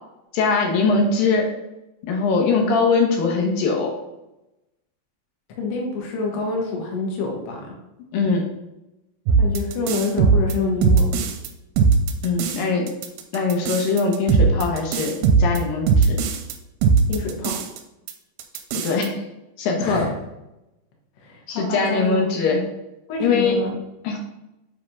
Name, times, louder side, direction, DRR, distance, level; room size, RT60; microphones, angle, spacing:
voice 1, 0.3-1.5 2.1-3.9 8.1-8.4 12.2-12.9 13.3-16.2 18.8-19.1 19.6-20.1 21.5-22.7 23.2-23.6 24.0-24.2, left 4 dB, 75° left, 1 dB, 2.7 m, -21 dB
voice 2, 5.6-7.8 9.4-11.2 17.1-17.6 19.8-20.1 21.2-22.4 23.1-23.7, left 3 dB, 55° left, -1 dB, 1.7 m, -27 dB
sound 1, 9.3-11.5 11.8-12.6 12.9-16.5 16.8-17.8 18.1-18.2 18.4-19.1, right 5 dB, 85° right, 2.4 m, -19 dB
7.5 x 3.5 x 5.2 m, 0.94 s
omnidirectional pair, 4.3 m